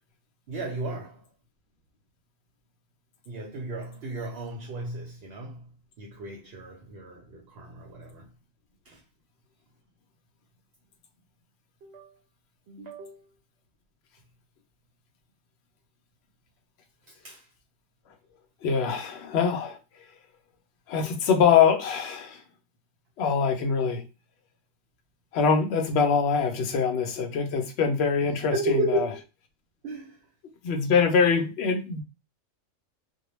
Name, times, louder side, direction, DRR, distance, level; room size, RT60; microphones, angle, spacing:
voice 1, 0.5-1.3 3.3-5.7 6.0-8.3 8.8-9.0 11.8-12.2 12.7-13.3 17.1-17.5 28.2-29.2 29.8-30.2, right 2 dB, 60° right, 0.7 m, -34 dB
voice 2, 18.6-19.8 20.9-22.4 23.2-24.0 25.3-29.1 30.6-32.0, left 6 dB, 65° left, 0.7 m, -23 dB
2.1 x 2.1 x 3.0 m
omnidirectional pair, 1.3 m